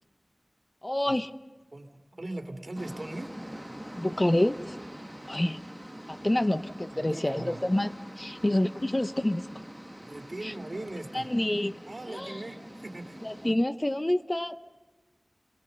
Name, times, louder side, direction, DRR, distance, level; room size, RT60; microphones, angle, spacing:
voice 1, 0.8-1.3 4.0-4.8 5.3-5.6 6.1-7.9 8.2-9.5 10.4-10.5 11.1-11.8 12.1-12.3 13.2-14.7, left 1 dB, 30° left, 11 dB, 0.7 m, -27 dB
voice 2, 1.7-3.4 6.3-6.5 6.9-7.6 10.0-11.3 11.9-13.2, right 2 dB, 55° right, 6 dB, 2.7 m, -40 dB
sound 1, 2.7-13.5, equal, 10° right, 1.2 m, -44 dB
29.0 x 23.0 x 6.8 m, 1.2 s
wide cardioid pair, 60°, 0 cm